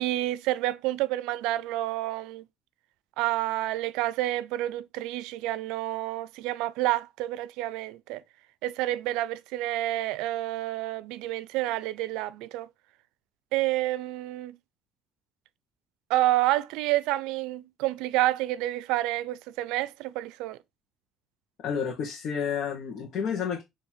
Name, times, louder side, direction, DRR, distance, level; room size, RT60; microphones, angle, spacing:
voice 1, 0.0-2.4 3.2-8.2 8.6-12.7 13.5-14.6 16.1-20.6, right 16 dB, 90° right, 0.5 m, -29 dB
voice 2, 21.6-23.6, left 7 dB, 60° left, 1.7 m, -30 dB
6.5 x 3.3 x 4.4 m
cardioid pair, 125°, 0 cm